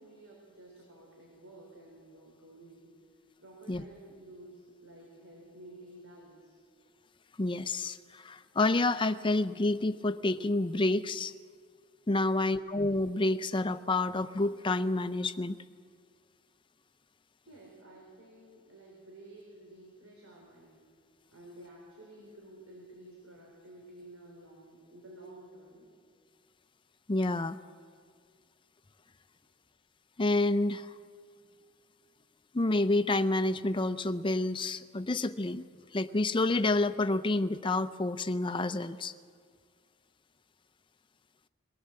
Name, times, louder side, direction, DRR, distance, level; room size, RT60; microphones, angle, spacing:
voice 1, 0.0-2.9 3.4-6.6 17.5-20.8 21.3-25.9 29.4-29.5, right 1 dB, 80° right, -2 dB, 3.9 m, -52 dB
voice 2, 7.4-11.3 12.1-15.6 27.1-27.6 30.2-30.9 32.5-35.7 35.9-39.1, left 2 dB, 25° left, 12 dB, 0.5 m, -29 dB
22.0 x 17.0 x 7.6 m, 2.1 s
head